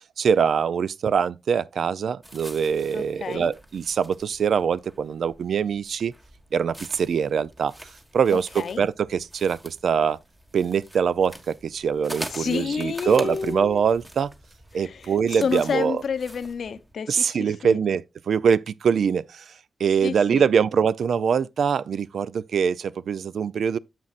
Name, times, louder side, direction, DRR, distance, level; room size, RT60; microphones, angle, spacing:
voice 1, 0.2-6.1 6.5-7.7 8.1-10.2 10.5-14.3 14.7-16.0 17.1-19.5 19.8-23.8, right 7 dB, 75° right, 0.3 m, -23 dB
sound 1, 2.2-16.9, right 1 dB, 15° right, 1.4 m, -44 dB
voice 2, 2.9-3.5 8.3-8.8 12.3-13.8 14.7-17.8 20.0-20.5, left 6 dB, 70° left, 0.6 m, -30 dB
9.4 x 7.5 x 2.4 m
wide cardioid pair, 110°, 0 cm